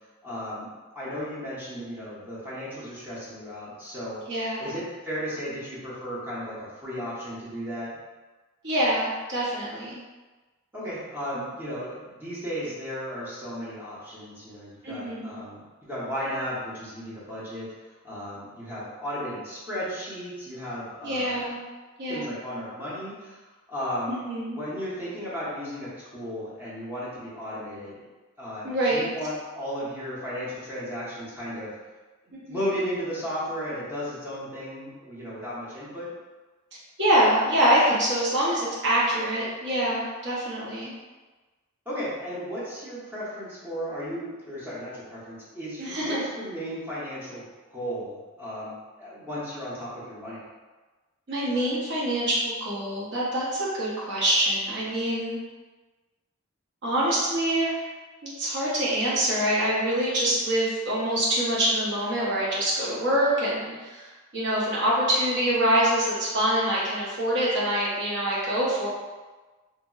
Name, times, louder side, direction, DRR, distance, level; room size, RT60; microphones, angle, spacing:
voice 1, 0.2-4.2 4.6-7.9 10.7-21.4 22.1-23.4 23.7-24.2 24.5-28.0 28.4-31.7 32.5-36.1 41.9-47.4 47.7-50.4, equal, 10° right, -10 dB, 0.7 m, -35 dB
voice 2, 4.3-4.7 8.6-10.0 14.8-15.4 21.0-21.6 22.0-22.3 24.1-24.6 28.6-29.1 32.3-32.6 37.0-40.9 45.8-46.3 51.3-55.4 56.8-57.8 58.2-64.0 64.3-68.9, right 1 dB, 55° right, -7 dB, 0.8 m, -25 dB
2.8 x 2.8 x 2.3 m, 1.3 s
head